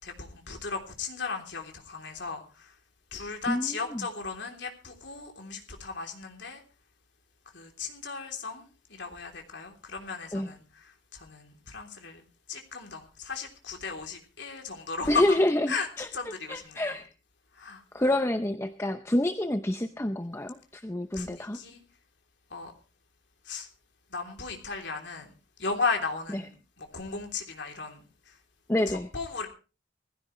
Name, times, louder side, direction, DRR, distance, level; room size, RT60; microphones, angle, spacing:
voice 1, 0.0-2.7 3.1-6.6 7.5-10.6 11.1-12.2 12.5-15.4 15.7-17.0 17.5-17.8 21.1-21.8 22.5-22.7 23.5-23.7 24.1-25.3 25.6-28.1 28.9-29.5, left 4 dB, 60° left, 3.3 m, -35 dB
voice 2, 3.5-4.1 10.3-10.5 15.1-16.1 16.5-17.1 17.9-21.6 26.3-26.4 28.7-29.1, left 1 dB, 15° left, 0.6 m, -28 dB
20.0 x 15.5 x 3.2 m
head